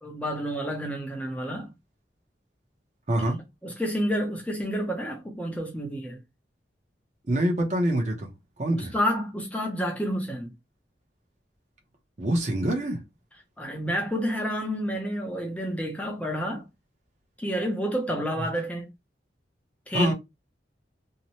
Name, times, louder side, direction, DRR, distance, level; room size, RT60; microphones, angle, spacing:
voice 1, 0.0-1.7 3.6-6.2 8.7-10.5 13.6-16.7 17.4-18.9 19.9-20.1, equal, 10° left, 0.5 m, -29 dB
voice 2, 3.1-3.4 7.3-8.3 8.6-8.9 12.2-13.0 19.9-20.1, right 1 dB, 40° right, 0.8 m, -25 dB
2.7 x 2.1 x 2.9 m
head